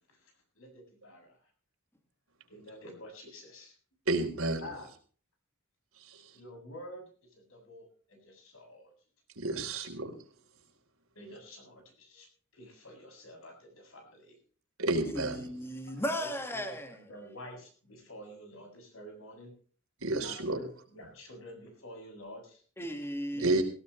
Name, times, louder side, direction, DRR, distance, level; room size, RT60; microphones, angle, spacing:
voice 1, 0.1-1.4 2.5-3.7 4.6-4.9 6.3-8.9 11.1-12.3 12.5-14.4 16.2-19.5 20.2-22.6 23.3-23.6, equal, 75° left, 7.7 m, -49 dB
voice 2, 4.1-4.6 9.4-10.1 14.8-15.5 20.0-20.6 23.4-23.6, right 2 dB, 85° right, 3.9 m, -30 dB
voice 3, 15.1-17.0 22.8-23.6, equal, 10° left, 2.0 m, -36 dB
18.5 x 17.0 x 3.2 m
head